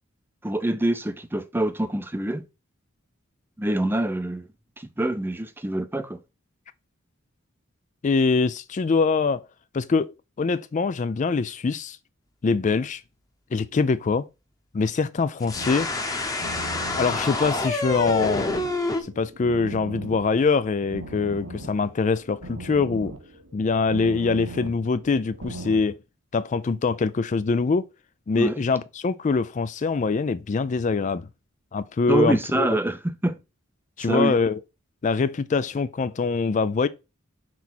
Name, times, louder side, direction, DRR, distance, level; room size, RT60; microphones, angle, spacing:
voice 1, 0.4-2.4 3.6-4.5 4.8-6.2 28.4-28.5 32.1-33.4 34.1-34.4, right 1 dB, 10° right, 0.5 m, -25 dB
voice 2, 8.0-9.5 9.7-12.0 12.4-13.0 13.5-14.3 14.7-15.9 17.0-18.5 19.0-23.1 23.5-26.0 26.3-27.9 28.3-31.3 31.7-32.7 34.0-34.6 35.0-36.9, left 4 dB, 35° left, 0.4 m, -24 dB
sound 1, 15.4-19.0, left 2 dB, 15° left, 1.0 m, -27 dB
sound 2, 15.5-25.8, right 1 dB, 85° right, 1.4 m, -40 dB
6.2 x 4.1 x 4.2 m
head